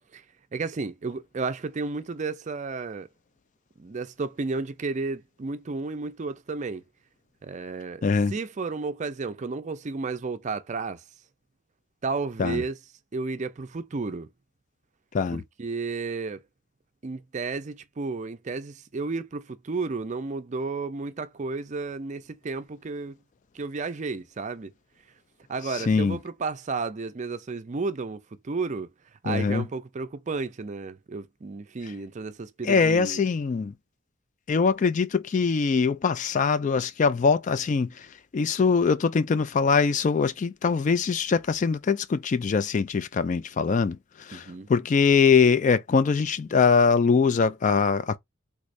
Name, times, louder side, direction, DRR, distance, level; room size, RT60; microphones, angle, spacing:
voice 1, 0.5-3.1 3.8-6.8 7.4-8.0 8.3-11.0 12.0-12.8 13.1-14.3 15.3-16.4 17.0-23.2 23.5-24.7 25.5-28.9 29.2-33.2 44.3-44.7, right 4 dB, 35° right, 0.4 m, -32 dB
voice 2, 8.0-8.3 12.4-12.6 15.1-15.4 25.7-26.2 29.3-29.7 32.6-33.7 34.5-48.2, left 5 dB, 40° left, 0.3 m, -23 dB
3.5 x 3.1 x 2.4 m
head